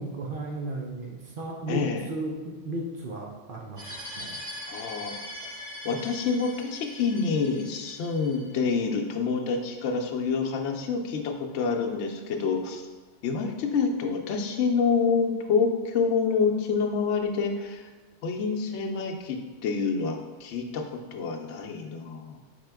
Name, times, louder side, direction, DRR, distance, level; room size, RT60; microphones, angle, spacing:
voice 1, 0.0-3.9 4.2-4.4, right 1 dB, 55° right, -1 dB, 0.7 m, -35 dB
voice 2, 1.7-2.1 4.7-5.1 5.8-12.9 13.2-17.8 18.2-20.8 21.1-22.4, left 5 dB, 75° left, 3 dB, 0.9 m, -27 dB
sound 1, 3.8-8.7, left 1 dB, 40° right, 1.4 m, -41 dB
4.3 x 3.6 x 3.4 m, 1.3 s
omnidirectional pair, 1.2 m